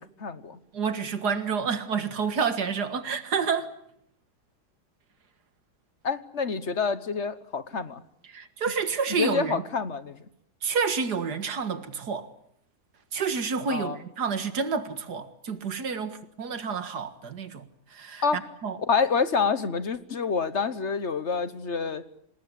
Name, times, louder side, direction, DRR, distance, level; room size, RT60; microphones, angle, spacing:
voice 1, 0.0-0.6 6.0-8.0 9.2-10.2 13.7-14.0 18.2-18.5 18.9-22.0, left 5 dB, 50° left, 1.3 m, -27 dB
voice 2, 0.7-3.7 8.3-9.6 10.6-12.3 13.1-18.8, right 5 dB, 90° right, 2.3 m, -29 dB
27.0 x 20.0 x 8.5 m
omnidirectional pair, 1.7 m